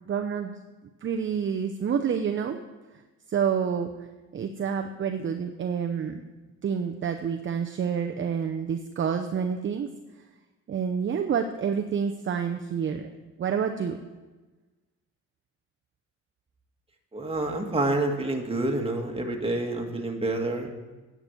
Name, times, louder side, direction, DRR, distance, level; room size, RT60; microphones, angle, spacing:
voice 1, 0.1-0.6 1.0-2.6 3.3-4.0 4.3-6.2 6.6-9.9 10.7-13.1 13.4-14.0, right 7 dB, 40° right, 5 dB, 0.7 m, -28 dB
voice 2, 17.1-20.7, right 2 dB, 20° right, 2 dB, 1.7 m, -28 dB
9.6 x 6.1 x 8.3 m, 1.2 s
cardioid pair, 90°, 30 cm